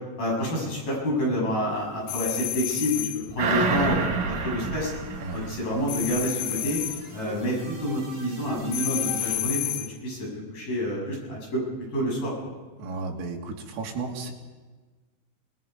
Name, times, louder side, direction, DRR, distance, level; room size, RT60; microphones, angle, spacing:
voice 1, 0.2-4.9 5.3-6.8 7.1-9.6 10.0-11.6 11.9-12.3, equal, 45° left, -3 dB, 8.9 m, -28 dB
sound 1, 2.1-3.3 5.9-7.1 8.7-10.0, left 14 dB, 75° left, 3.3 m, -30 dB
sound 2, 3.1-9.4, right 2 dB, 20° right, 4.0 m, -45 dB
sound 3, 3.4-6.3 6.7-6.8, right 4 dB, 55° right, 2.2 m, -28 dB
voice 2, 12.8-14.3, right 3 dB, 90° right, 0 dB, 5.1 m, -33 dB
28.0 x 19.5 x 5.3 m, 1.3 s
omnidirectional pair, 5.8 m